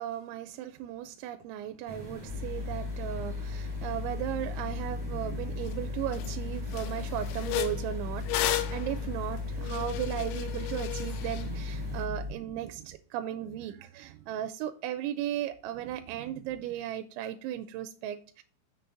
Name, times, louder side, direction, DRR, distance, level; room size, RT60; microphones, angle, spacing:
voice 1, 0.0-18.4, right 12 dB, 85° right, 8 dB, 3.0 m, -36 dB
sound 1, 1.9-12.0, right 1 dB, 10° right, 3.2 m, -43 dB
sound 2, 2.3-12.3, left 4 dB, 70° left, 4.5 m, -36 dB
sound 3, 5.7-5.8 6.1-6.4 6.7-11.5, left 13 dB, 85° left, 3.0 m, -34 dB
7.0 x 6.6 x 3.8 m, 0.42 s
omnidirectional pair, 5.2 m